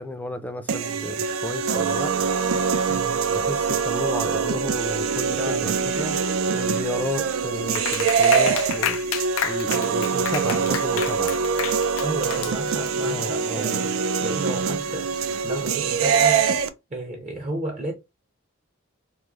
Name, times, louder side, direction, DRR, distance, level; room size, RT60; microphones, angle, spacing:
voice 1, 0.0-2.3 3.3-6.2 6.5-9.0 9.4-11.4 13.0-13.7, left 1 dB, 10° left, 0.4 m, -33 dB
sound 1, 0.7-16.7, right 6 dB, 80° right, 0.4 m, -24 dB
voice 2, 2.9-3.3 5.4-5.8 10.5-10.6 12.0-15.1 15.4-16.4 16.9-17.9, right 1 dB, 35° right, 0.7 m, -33 dB
Clapping, 7.7-13.0, left 8 dB, 75° left, 0.4 m, -30 dB
3.0 x 2.1 x 3.5 m
head